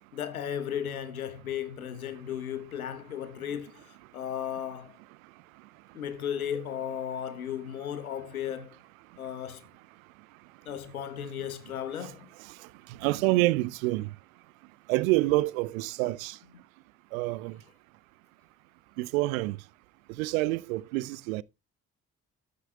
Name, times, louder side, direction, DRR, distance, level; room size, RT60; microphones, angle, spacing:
voice 1, 0.1-5.0 5.9-8.7 9.2-9.6 10.6-12.3, left 9 dB, 85° left, 0.9 m, -35 dB
voice 2, 12.9-14.1 14.9-16.4 17.1-17.6 19.0-19.6 20.2-21.4, right 20 dB, 70° right, 0.5 m, -27 dB
13.0 x 8.9 x 2.3 m
figure-of-eight pair, 40°, 42 cm